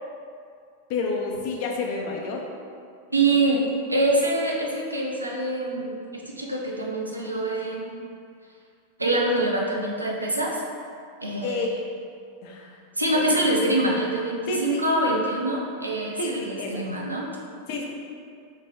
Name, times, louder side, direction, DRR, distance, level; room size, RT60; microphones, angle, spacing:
voice 1, 0.9-2.4 11.4-11.8 12.4-12.8 13.1-13.4 14.5-14.8 16.2-16.8 17.7-17.9, left 3 dB, 45° left, 0 dB, 0.5 m, -29 dB
voice 2, 3.1-3.6 3.9-8.0 9.0-10.6 11.2-11.7 13.0-17.3, right 2 dB, 85° right, -2 dB, 0.4 m, -25 dB
3.2 x 2.2 x 3.4 m, 2.3 s
figure-of-eight pair, 90°, 0 cm